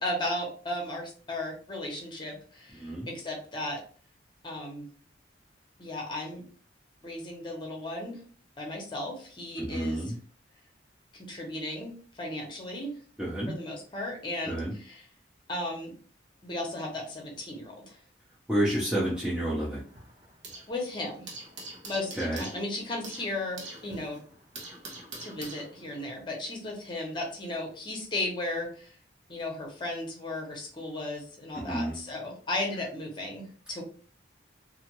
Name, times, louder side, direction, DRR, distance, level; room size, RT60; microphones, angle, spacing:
voice 1, 0.0-3.8 4.4-4.9 5.8-6.4 7.0-8.2 8.6-10.0 11.1-12.9 13.5-15.1 15.5-15.9 16.4-18.0 20.7-21.3 21.8-24.2 25.2-29.0 29.3-33.8, left 1 dB, 25° left, 0 dB, 0.8 m, -35 dB
voice 2, 2.8-3.1 9.6-10.2 13.2-13.5 14.5-14.7 18.5-19.8 22.2-22.5 31.5-32.0, right 1 dB, 5° right, -8 dB, 0.6 m, -29 dB
sound 1, 18.7-20.8 21.0-26.1, right 2 dB, 80° right, 1.0 m, -45 dB
2.6 x 2.4 x 2.9 m, 0.42 s
head